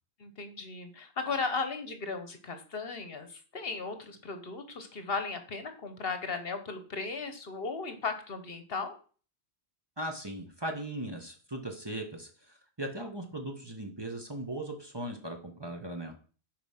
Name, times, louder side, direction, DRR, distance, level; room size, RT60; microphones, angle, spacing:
voice 1, 0.2-8.9, left 4 dB, 60° left, 8 dB, 1.2 m, -36 dB
voice 2, 10.0-16.1, right 1 dB, 25° right, 3 dB, 1.2 m, -38 dB
8.0 x 4.9 x 5.7 m, 0.40 s
omnidirectional pair, 1.2 m